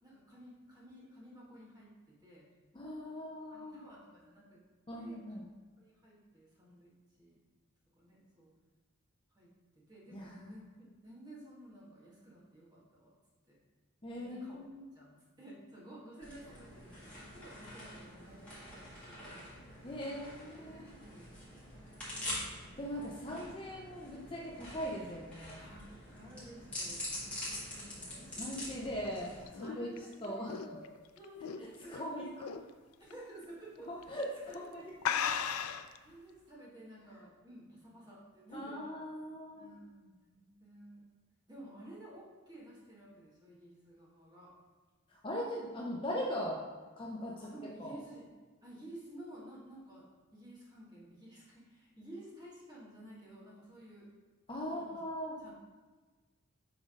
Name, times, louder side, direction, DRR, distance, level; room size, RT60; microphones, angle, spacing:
voice 1, 0.0-2.5 3.5-4.6 5.0-5.4 5.8-6.9 7.2-7.4 8.0-8.5 9.3-9.5 9.8-13.2 13.5-13.6 14.2-14.6 14.9-19.5 20.9-21.3 22.1-22.6 25.6-25.8 26.1-28.6 29.6-32.7 33.0-34.2 34.5-35.4 36.0-38.8 39.5-41.0 41.5-44.5 47.4-48.3 48.6-50.1 50.3-54.1 54.7-55.0 55.4-55.5, right 1 dB, 20° right, -6 dB, 1.7 m, -53 dB
voice 2, 2.7-3.8 4.9-5.4 10.1-10.5 14.0-14.8 19.8-20.9 22.8-25.6 28.4-29.9 30.2-30.6 31.9-32.5 33.9-34.9 38.5-39.7 45.1-46.6 47.0-47.5 47.8-48.0 54.5-55.4, equal, 25° left, -3 dB, 0.6 m, -40 dB
sound 1, 16.2-29.4, left 1 dB, 5° left, 1.7 m, -45 dB
sound 2, 28.9-32.0 32.4-32.7 33.1-33.2 34.0-34.2 34.5-34.6 35.0-36.0, left 8 dB, 90° left, 0.4 m, -36 dB
6.1 x 3.8 x 5.0 m, 1.3 s
head